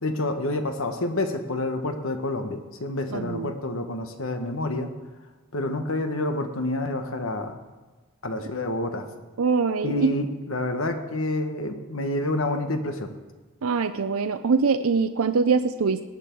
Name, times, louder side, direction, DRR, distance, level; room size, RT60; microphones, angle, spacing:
voice 1, 0.0-4.9 5.5-7.6 8.2-9.0 9.8-13.1, left 2 dB, 70° left, 6 dB, 1.3 m, -28 dB
voice 2, 3.1-3.5 9.4-10.2 13.6-16.0, right 5 dB, 85° right, 10 dB, 0.5 m, -23 dB
18.5 x 9.5 x 4.6 m, 1.3 s
head